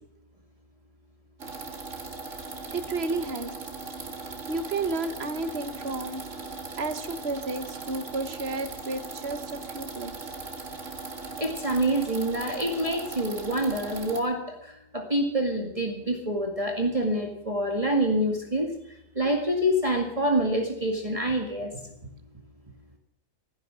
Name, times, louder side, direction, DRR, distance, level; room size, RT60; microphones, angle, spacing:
sound 1, 1.4-14.2, right 3 dB, 65° right, 2.3 m, -39 dB
voice 1, 2.7-3.5 4.5-6.2 6.8-10.1, right 3 dB, 50° right, 10 dB, 1.5 m, -32 dB
voice 2, 11.4-18.7 19.2-21.8, right 1 dB, 25° right, 1 dB, 2.1 m, -26 dB
15.0 x 11.0 x 7.5 m, 0.79 s
omnidirectional pair, 1.4 m